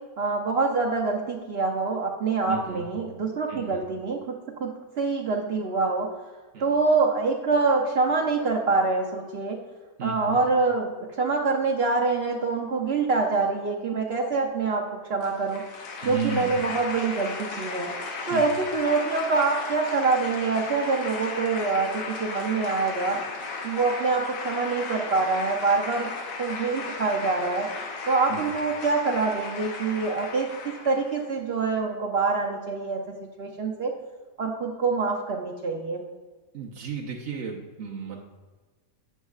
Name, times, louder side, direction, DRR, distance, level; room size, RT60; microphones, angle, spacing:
voice 1, 0.2-4.2 4.6-4.7 5.0-6.1 6.6-9.6 10.0-10.9 11.2-15.6 16.0-17.9 18.3-23.2 23.6-26.1 26.4-27.7 28.1-33.9 34.4-36.0, right 4 dB, 70° right, 0 dB, 0.6 m, -25 dB
voice 2, 2.5-2.8 3.5-3.8 6.5-6.7 10.0-10.4 16.0-16.6 18.3-18.4 28.3-28.4 36.5-38.2, right 5 dB, 55° right, -3 dB, 0.8 m, -33 dB
sound 1, 15.2-31.3, left 4 dB, 90° left, 1.6 m, -35 dB
9.0 x 6.3 x 2.3 m, 1.3 s
omnidirectional pair, 1.8 m